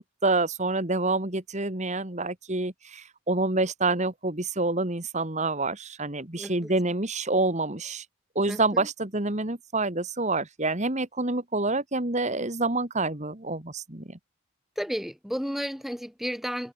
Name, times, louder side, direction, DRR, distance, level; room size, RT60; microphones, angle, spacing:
voice 1, 0.0-8.1 8.4-14.2, right 2 dB, 30° right, 1.9 m, -27 dB
voice 2, 6.4-6.7 8.5-8.9 14.8-16.7, equal, ahead, 6.1 m, -33 dB
head